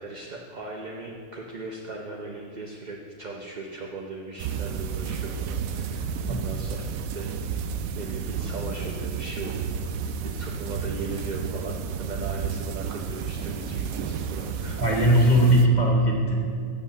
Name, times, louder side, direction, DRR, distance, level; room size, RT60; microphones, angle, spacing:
voice 1, 0.0-6.8 7.1-7.7 7.9-15.5, right 3 dB, 40° right, 0 dB, 0.7 m, -38 dB
sound 1, 4.4-15.7, right 6 dB, 80° right, 1.0 m, -31 dB
voice 2, 14.8-16.4, equal, 35° left, -2 dB, 1.4 m, -20 dB
7.6 x 7.0 x 6.3 m, 2.2 s
omnidirectional pair, 1.4 m